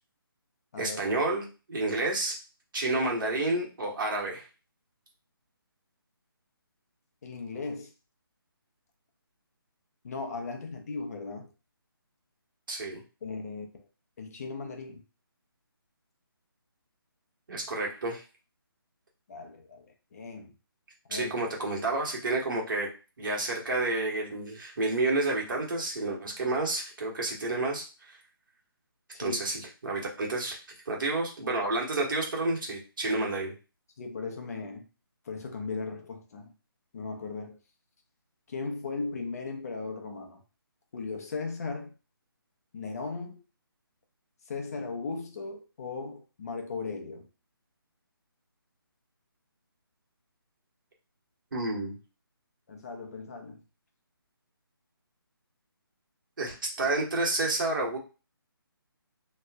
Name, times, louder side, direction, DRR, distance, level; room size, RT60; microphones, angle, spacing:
voice 1, 0.8-2.4 2.7-4.4 12.7-13.0 17.5-18.2 21.1-22.9 23.2-27.9 29.2-30.6 30.8-33.5 51.5-51.9 56.4-58.0, right 2 dB, 55° right, 1.3 m, -30 dB
voice 2, 7.2-7.9 10.0-11.5 13.2-13.9 14.2-15.0 19.3-20.5 21.1-21.3 29.1-29.4 34.0-34.9 35.2-36.5 36.9-37.6 38.5-40.4 40.9-41.9 42.7-43.4 44.5-47.3 52.7-53.6, left 4 dB, 40° left, 0.7 m, -37 dB
2.9 x 2.0 x 3.5 m
figure-of-eight pair, 150°, 13 cm